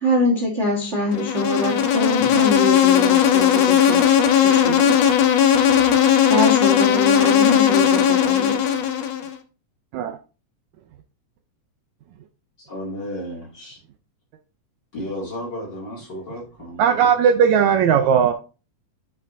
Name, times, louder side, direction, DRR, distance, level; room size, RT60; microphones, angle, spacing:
voice 1, 0.0-4.0 4.4-4.8 6.3-8.6, equal, 30° right, 0 dB, 1.3 m, -24 dB
Insect, 1.1-9.3, left 9 dB, 70° left, 1.8 m, -17 dB
voice 2, 12.6-13.8 14.9-17.2, equal, 35° left, -3 dB, 3.0 m, -33 dB
voice 3, 16.8-18.3, right 7 dB, 75° right, 6 dB, 1.8 m, -17 dB
8.8 x 5.9 x 2.7 m, 0.33 s
omnidirectional pair, 3.7 m